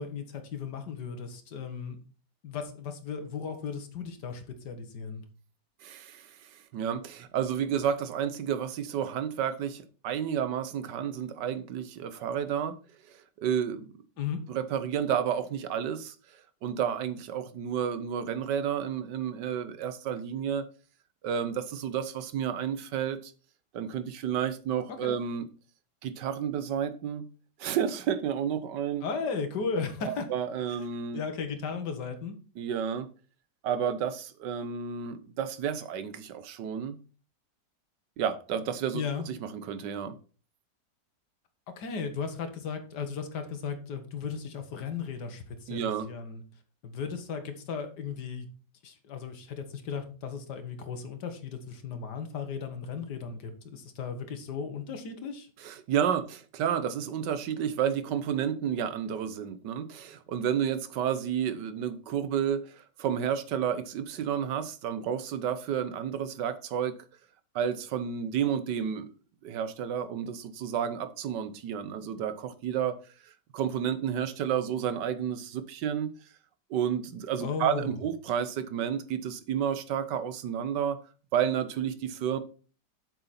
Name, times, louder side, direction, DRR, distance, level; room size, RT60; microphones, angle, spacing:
voice 1, 0.0-2.0 2.4-5.2 14.2-14.4 24.9-25.2 29.0-30.3 31.1-32.4 38.9-39.3 41.8-46.4 46.8-48.5 48.8-55.5 77.4-78.0, left 5 dB, 70° left, 7 dB, 1.9 m, -36 dB
voice 2, 5.8-12.8 13.1-13.9 14.5-16.1 16.6-20.7 21.2-23.3 23.7-25.5 26.0-27.2 27.6-29.0 30.0-31.2 32.6-33.1 33.6-37.0 38.2-40.1 45.7-46.1 55.6-66.9 67.5-69.1 69.4-73.0 73.5-76.1 76.7-81.0 81.3-82.4, right 8 dB, 75° right, 12 dB, 1.5 m, -31 dB
8.0 x 6.7 x 4.2 m, 0.37 s
omnidirectional pair, 1.9 m